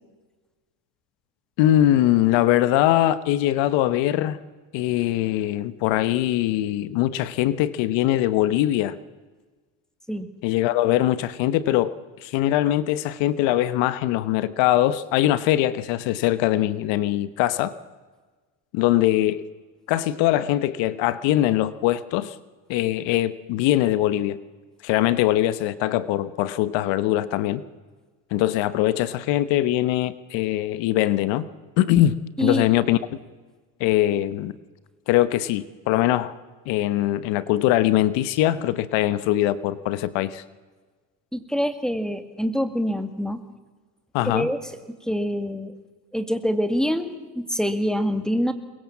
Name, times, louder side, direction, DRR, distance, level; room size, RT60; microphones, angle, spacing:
voice 1, 1.6-4.4 4.7-9.0 10.4-11.9 12.2-17.7 18.7-19.4 19.9-22.3 22.7-24.4 24.8-27.6 28.3-31.5 31.8-33.0 33.8-34.5 35.1-36.3 36.7-40.4 44.1-44.5, left 14 dB, 75° left, 16 dB, 1.2 m, -22 dB
voice 2, 32.4-32.7 41.3-43.4 44.2-44.6 44.9-45.8 46.1-48.5, equal, ahead, 10 dB, 2.1 m, -25 dB
23.0 x 21.5 x 7.3 m, 1.4 s
supercardioid pair, 100°, 45 cm